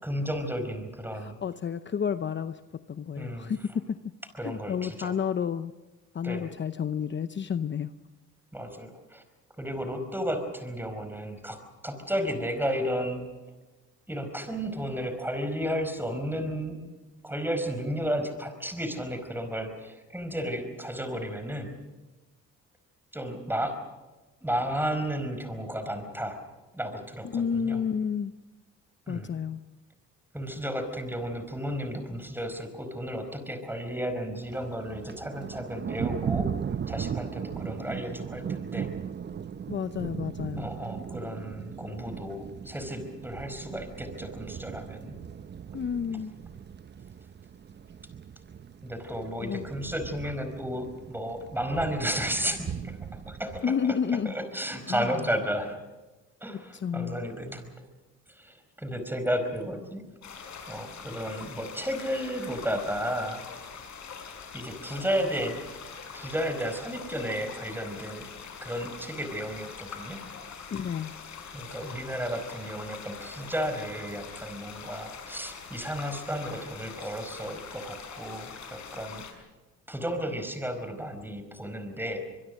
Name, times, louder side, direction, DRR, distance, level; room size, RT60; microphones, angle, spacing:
voice 1, 0.0-1.4 3.1-3.5 4.4-5.1 6.2-6.5 8.5-9.2 9.6-13.2 14.1-16.8 17.2-21.8 23.1-23.8 24.4-26.4 26.7-27.8 29.1-29.3 30.3-36.5 36.9-38.9 40.6-45.1 48.8-54.0 54.2-55.8 56.4-57.7 58.3-60.1 60.7-63.4 64.5-65.6 66.1-68.3 68.6-70.2 71.5-79.2 79.9-82.2, equal, 5° right, 8 dB, 4.8 m, -33 dB
voice 2, 1.1-4.0 4.4-5.7 6.1-7.9 27.2-28.3 29.1-29.6 39.7-40.7 45.7-46.3 49.4-49.7 53.6-54.4 54.9-55.3 56.7-57.3 70.7-71.1, left 7 dB, 40° left, 11 dB, 0.8 m, -31 dB
Thunder, 34.4-53.6, right 7 dB, 35° right, 0.7 m, -38 dB
sound 1, 60.2-79.3, left 6 dB, 65° left, 5.6 m, -43 dB
24.5 x 22.5 x 6.5 m, 1.2 s
cardioid pair, 90°, 30 cm